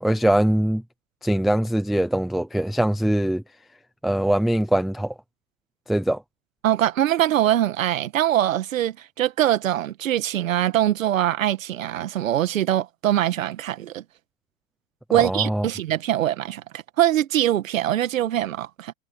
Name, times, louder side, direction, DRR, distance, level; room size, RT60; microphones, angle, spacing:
voice 1, 0.0-0.8 1.2-3.4 4.0-5.1 5.9-6.2 15.2-15.6, right 1 dB, ahead, 0.6 m, -22 dB
voice 2, 6.6-14.0 15.1-18.9, right 12 dB, 75° right, 1.7 m, -23 dB
hypercardioid pair, 160°, 40 cm